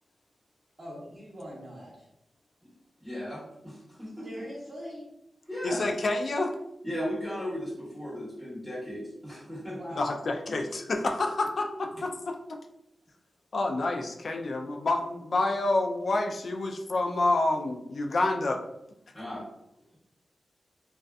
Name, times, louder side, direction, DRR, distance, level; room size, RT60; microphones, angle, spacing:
voice 1, 0.8-2.1 4.2-5.1 9.7-10.1, equal, 35° right, -10 dB, 0.8 m, -42 dB
voice 2, 3.0-4.3 5.5-5.9 6.8-9.8 19.1-19.4, equal, ahead, -9 dB, 1.1 m, -36 dB
voice 3, 5.6-6.5 10.0-12.6 13.5-18.6, left 2 dB, 65° left, 4 dB, 0.3 m, -28 dB
2.5 x 2.2 x 2.3 m, 0.85 s
cardioid pair, 70°, 0 cm